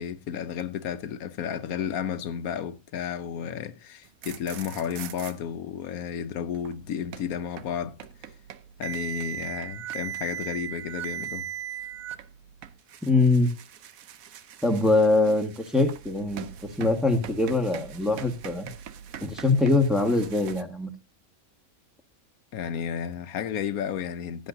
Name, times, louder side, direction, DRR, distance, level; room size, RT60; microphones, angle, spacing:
voice 1, 0.0-8.0 8.8-11.5 22.5-24.5, left 8 dB, 80° left, 1.2 m, -32 dB
sound 1, 4.1-5.3 6.5-20.6, right 10 dB, 75° right, 1.2 m, -40 dB
voice 2, 13.0-13.5 14.6-16.5 16.8-18.7 19.2-20.9, left 2 dB, ahead, 1.4 m, -23 dB
15.5 x 10.5 x 2.6 m
omnidirectional pair, 1.5 m